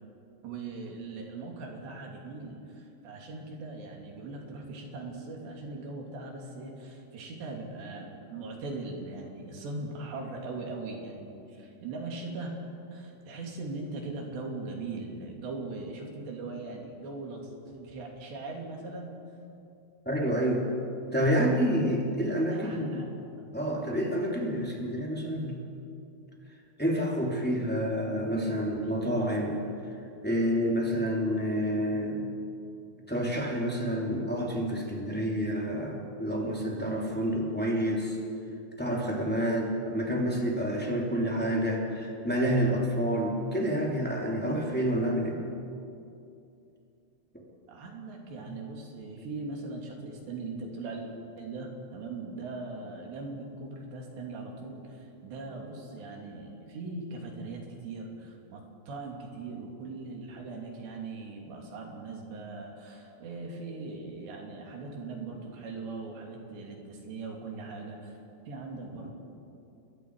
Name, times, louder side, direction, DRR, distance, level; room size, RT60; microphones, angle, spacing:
voice 1, 0.4-12.6 12.9-19.2 21.2-21.7 22.4-23.4 28.8-29.0 47.7-51.1 51.4-68.2 68.5-69.1, right 3 dB, 65° right, 0 dB, 4.9 m, -40 dB
voice 2, 20.0-20.7 21.1-23.0 23.5-25.6 26.8-29.6 30.2-32.2 33.1-38.2 38.8-45.4 48.4-48.5, equal, 5° left, -2 dB, 1.6 m, -28 dB
29.0 x 22.5 x 4.8 m, 2.6 s
omnidirectional pair, 5.6 m